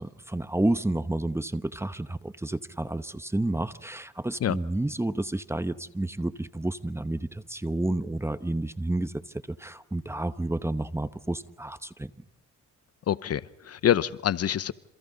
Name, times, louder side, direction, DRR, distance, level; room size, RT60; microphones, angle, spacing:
voice 1, 0.0-9.1 9.5-12.1, right 1 dB, 10° right, 13 dB, 0.9 m, -30 dB
voice 2, 13.1-14.7, left 10 dB, 55° left, 17 dB, 0.8 m, -26 dB
28.0 x 27.5 x 4.0 m, 0.89 s
cardioid pair, 90°, 30 cm